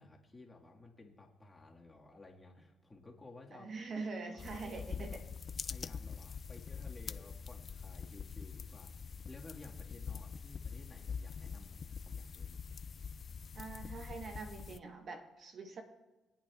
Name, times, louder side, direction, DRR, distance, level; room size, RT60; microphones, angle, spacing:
voice 1, 0.0-3.7 4.3-5.2 5.6-12.6, left 2 dB, 20° left, -1 dB, 1.6 m, -56 dB
voice 2, 3.5-5.2 13.5-15.8, right 3 dB, 55° right, 5 dB, 1.1 m, -44 dB
sound 1, 4.4-14.8, left 6 dB, 45° left, 0.3 m, -44 dB
21.5 x 8.7 x 2.3 m, 1.2 s
cardioid pair, 90°, 0 cm